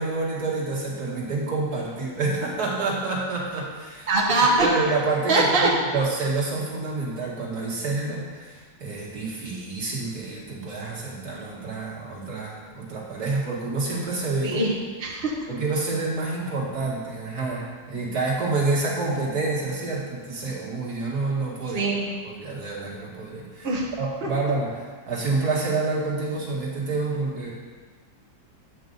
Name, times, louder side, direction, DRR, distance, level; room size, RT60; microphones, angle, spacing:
voice 1, 0.0-4.1 4.6-14.6 15.5-21.8 22.2-23.7 24.0-27.5, right 3 dB, 55° right, -4 dB, 2.3 m, -28 dB
voice 2, 4.1-4.7 5.3-5.7 14.4-14.7 15.0-15.3 21.7-22.2 23.6-23.9 24.2-24.3, right 2 dB, 35° right, -5 dB, 1.3 m, -22 dB
9.5 x 7.9 x 3.9 m, 1.5 s
omnidirectional pair, 2.0 m